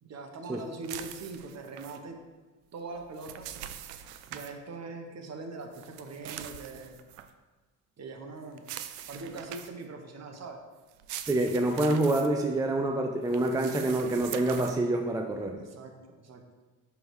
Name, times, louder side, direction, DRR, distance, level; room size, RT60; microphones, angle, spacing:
voice 1, 0.0-2.2 2.7-3.5 4.3-7.0 8.0-8.7 9.1-10.6 15.5-16.6, right 3 dB, 40° right, 4 dB, 1.1 m, -42 dB
sound 1, 0.8-2.0 2.9-4.5 5.7-7.3 8.6-9.8 10.9-12.3 13.3-14.8, right 11 dB, 85° right, 0.5 m, -43 dB
voice 2, 11.3-15.6, right 2 dB, 10° right, 3 dB, 0.4 m, -27 dB
6.1 x 3.4 x 4.7 m, 1.3 s
supercardioid pair, 75°, 40 cm